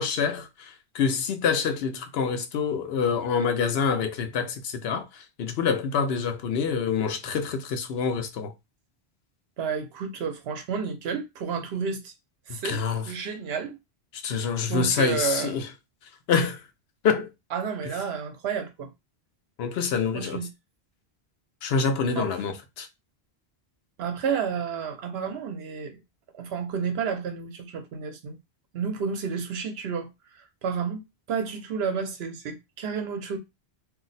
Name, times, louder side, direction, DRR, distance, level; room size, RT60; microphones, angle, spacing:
voice 1, 0.0-8.5 12.5-13.0 14.2-15.7 16.3-16.6 17.0-17.3 19.6-20.4 21.6-22.9, left 6 dB, 75° left, 0.8 m, -26 dB
voice 2, 9.6-12.1 12.5-12.8 13.1-13.8 14.7-15.6 17.5-18.9 20.1-20.5 22.1-22.4 24.0-26.0 26.3-28.4 28.7-30.1 30.3-31.0 31.3-33.4, right 6 dB, 75° right, 0.9 m, -31 dB
2.6 x 2.0 x 3.9 m
omnidirectional pair, 1.1 m